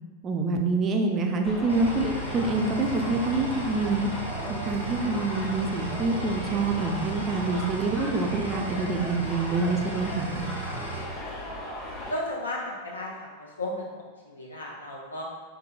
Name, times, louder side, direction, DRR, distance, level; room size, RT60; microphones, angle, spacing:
voice 1, 0.2-4.1 4.6-10.4, right 3 dB, 30° right, 3 dB, 0.3 m, -26 dB
sound 1, 1.4-12.1, left 1 dB, 30° left, 0.9 m, -37 dB
sound 2, 1.7-11.0, right 3 dB, 85° right, 0.6 m, -36 dB
voice 2, 12.1-13.9 14.3-15.2, left 1 dB, 75° left, -2 dB, 0.6 m, -34 dB
3.7 x 2.8 x 2.3 m, 1.4 s
figure-of-eight pair, 90°, 0 cm